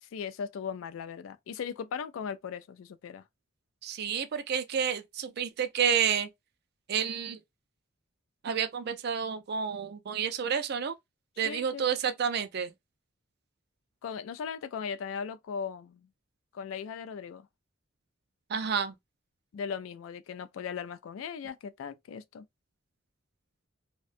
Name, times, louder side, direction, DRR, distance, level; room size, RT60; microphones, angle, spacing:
voice 1, 0.0-3.2 11.4-11.8 14.0-16.1 16.5-17.5 19.5-22.5, left 6 dB, 75° left, 0.3 m, -38 dB
voice 2, 3.8-6.3 6.9-7.4 8.4-10.9 11.4-12.7 18.5-18.9, right 7 dB, 50° right, 0.4 m, -30 dB
2.6 x 2.2 x 2.4 m
head